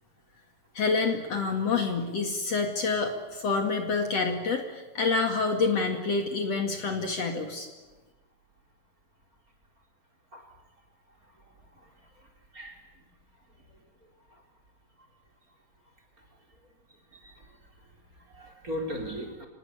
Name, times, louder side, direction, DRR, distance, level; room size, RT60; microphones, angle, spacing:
voice 1, 0.7-7.7, left 4 dB, 50° left, 4 dB, 3.1 m, -27 dB
voice 2, 11.7-12.9 13.7-13.8 14.3-14.4 17.1-17.6 18.1-19.5, equal, 25° right, 4 dB, 4.5 m, -39 dB
26.0 x 20.0 x 9.8 m, 1.2 s
omnidirectional pair, 3.9 m